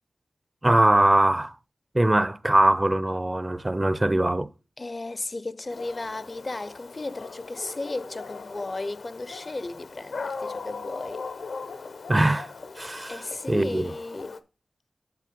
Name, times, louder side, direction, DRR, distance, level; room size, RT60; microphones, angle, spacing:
voice 1, 0.6-1.5 1.9-4.5 12.1-12.5 12.8-13.9, right 1 dB, 25° right, 0.4 m, -22 dB
voice 2, 4.8-11.3 13.1-14.4, left 2 dB, 45° left, 0.4 m, -35 dB
Dog, 5.7-14.4, left 4 dB, 85° left, 0.6 m, -39 dB
6.5 x 5.8 x 4.6 m
cardioid pair, 55°, 0 cm